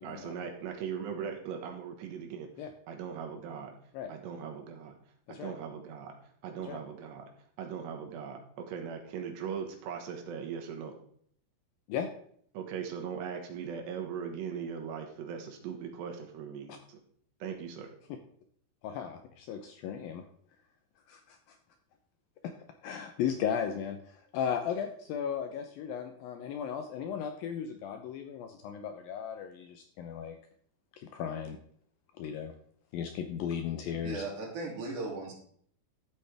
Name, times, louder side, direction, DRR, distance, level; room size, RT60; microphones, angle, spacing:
voice 1, 0.0-2.5 2.9-3.8 4.1-5.0 5.3-6.1 6.4-7.3 7.6-10.9 12.5-17.0 17.4-17.9, right 7 dB, 80° right, 3 dB, 3.5 m, -39 dB
voice 2, 18.8-20.2 21.1-21.6 22.4-22.5 22.8-30.4 31.0-31.6 32.2-32.5 32.9-34.2, left 8 dB, 80° left, 6 dB, 2.2 m, -36 dB
voice 3, 33.9-35.3, right 3 dB, 50° right, -3 dB, 3.9 m, -37 dB
12.0 x 8.4 x 3.4 m, 0.62 s
omnidirectional pair, 4.8 m